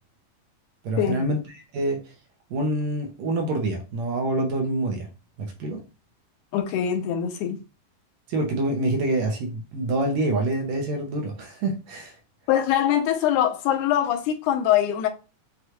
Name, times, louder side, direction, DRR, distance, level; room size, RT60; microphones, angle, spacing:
voice 1, 0.8-2.1 2.5-5.1 5.4-5.8 8.3-12.2, right 1 dB, 75° right, 1.8 m, -26 dB
voice 2, 6.5-7.6 12.5-15.1, left 10 dB, 85° left, 2.2 m, -23 dB
6.3 x 2.3 x 2.9 m
omnidirectional pair, 3.5 m